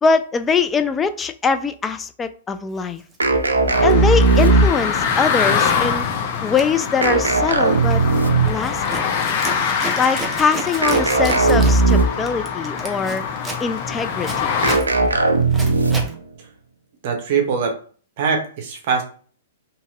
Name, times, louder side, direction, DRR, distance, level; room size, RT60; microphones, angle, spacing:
voice 1, 0.0-3.0 3.8-6.1 6.4-8.0 8.4-9.0 10.0-13.2 13.6-14.5, left 5 dB, 15° left, 0.3 m, -22 dB
Zipper (clothing), 3.0-3.2 3.7-5.1 5.3-5.7 6.0-16.1, right 2 dB, 10° right, 0.7 m, -34 dB
sound 1, 3.2-5.0 7.0-8.7 10.8-12.4 14.6-16.2, right 3 dB, 85° right, 0.4 m, -17 dB
sound 2, 3.7-14.8, left 6 dB, 45° left, 0.7 m, -24 dB
voice 2, 17.0-17.7 18.2-19.0, right 6 dB, 50° right, 0.7 m, -22 dB
2.8 x 2.8 x 2.3 m
figure-of-eight pair, 110°, 0 cm